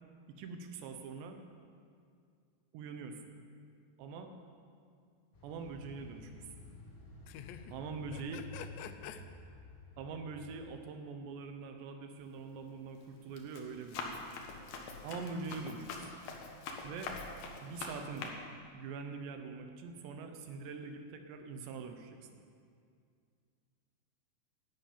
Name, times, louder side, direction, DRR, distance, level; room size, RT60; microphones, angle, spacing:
voice 1, 0.4-1.4 2.7-3.3 4.0-4.3 5.4-6.4 7.7-8.4 10.0-14.2 15.0-15.9 16.8-17.1 17.6-18.4 18.7-22.2, right 4 dB, 85° right, 6 dB, 3.2 m, -43 dB
sound 1, 5.3-10.8, left 1 dB, 40° left, 3.6 m, -52 dB
voice 2, 7.3-7.8 8.1-9.3, left 9 dB, 85° left, 9 dB, 3.0 m, -47 dB
Run, 12.2-12.5 13.0-18.3, left 4 dB, 65° left, 2.7 m, -44 dB
11.5 x 10.5 x 8.7 m, 2.2 s
omnidirectional pair, 4.9 m